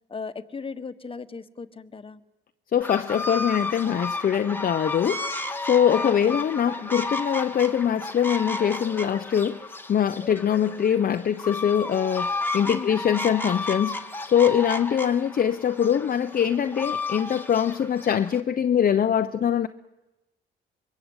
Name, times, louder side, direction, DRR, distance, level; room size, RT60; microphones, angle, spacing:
voice 1, 0.1-2.2 6.0-6.5 12.6-13.0, left 5 dB, 25° left, 10 dB, 1.4 m, -37 dB
voice 2, 2.7-5.3 5.7-9.6 9.9-14.0 14.3-19.7, left 9 dB, 45° left, 8 dB, 0.8 m, -23 dB
sound 1, 2.8-18.4, left 2 dB, 10° left, 1.7 m, -33 dB
25.5 x 22.5 x 8.1 m, 1.0 s
cardioid pair, 90°, 20 cm